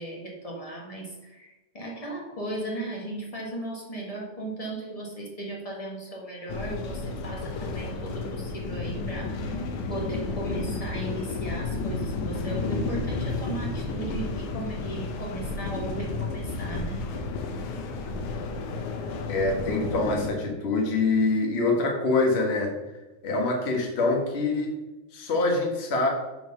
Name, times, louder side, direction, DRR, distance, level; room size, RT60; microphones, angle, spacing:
voice 1, 0.0-9.4 9.9-17.1, right 2 dB, 20° left, -2 dB, 1.1 m, -36 dB
sound 1, 6.5-20.3, left 3 dB, 85° left, 2.4 m, -32 dB
voice 2, 19.3-22.7 23.2-24.7 25.1-26.1, left 3 dB, 35° left, 1 dB, 1.0 m, -25 dB
7.7 x 4.7 x 5.3 m, 1.1 s
omnidirectional pair, 3.4 m